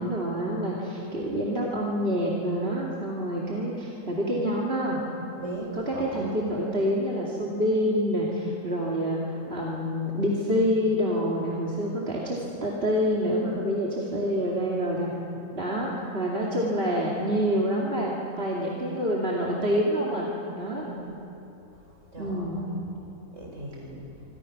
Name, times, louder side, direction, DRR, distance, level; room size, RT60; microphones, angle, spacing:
voice 1, 0.0-5.0 5.7-15.1 15.5-20.3 20.5-20.9 22.2-22.7, equal, 45° right, -4 dB, 2.8 m, -27 dB
voice 2, 5.4-6.4 20.6-21.1 22.1-22.8 23.3-24.1, right 1 dB, 65° right, -1 dB, 5.7 m, -38 dB
27.0 x 25.5 x 6.1 m, 3.0 s
omnidirectional pair, 1.4 m